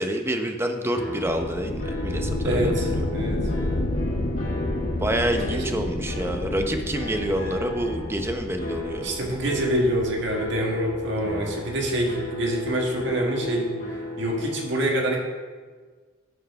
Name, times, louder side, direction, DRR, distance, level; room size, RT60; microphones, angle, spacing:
voice 1, 0.0-2.9 5.0-9.1, right 1 dB, 15° right, 5 dB, 0.7 m, -27 dB
sound 1, 0.9-14.6, left 1 dB, 75° left, 3.1 m, -36 dB
sound 2, 1.3-12.7, left 1 dB, 50° left, 0.9 m, -30 dB
voice 2, 2.4-3.4 5.5-5.6 9.0-13.7 14.2-15.2, right 1 dB, 65° right, 0 dB, 1.7 m, -26 dB
11.5 x 4.5 x 5.7 m, 1.5 s
head